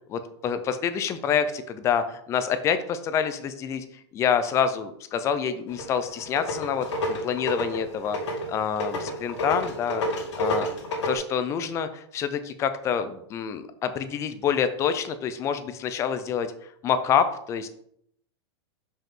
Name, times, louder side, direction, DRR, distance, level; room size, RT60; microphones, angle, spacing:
voice 1, 0.1-3.8 4.1-8.2 8.5-10.1 10.4-10.7 11.0-16.5 16.8-17.7, left 7 dB, 20° left, 11 dB, 0.4 m, -27 dB
sound 1, 5.7-11.2, left 1 dB, 85° left, 2.4 m, -30 dB
5.2 x 5.0 x 3.7 m, 0.70 s
supercardioid pair, 150°, 15 cm